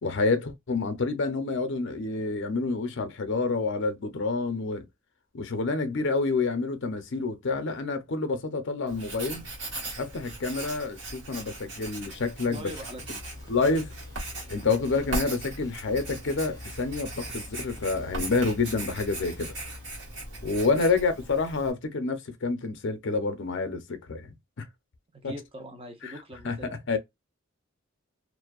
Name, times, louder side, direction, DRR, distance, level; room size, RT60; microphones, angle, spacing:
voice 1, 0.0-4.9 5.3-9.5 10.0-12.7 13.5-13.9 14.5-19.5 20.4-24.7 25.2-25.3 26.0-26.1 26.4-26.6 26.9-27.0, left 3 dB, 60° left, 0.6 m, -28 dB
Writing, 8.9-21.7, right 2 dB, 60° right, 1.4 m, -39 dB
voice 2, 12.4-13.2 13.4-13.5 20.7-20.9 25.1-26.7, equal, 25° right, 0.7 m, -42 dB
sound 1, 13.0-19.9, left 2 dB, 15° left, 0.5 m, -46 dB
2.5 x 2.1 x 2.3 m
head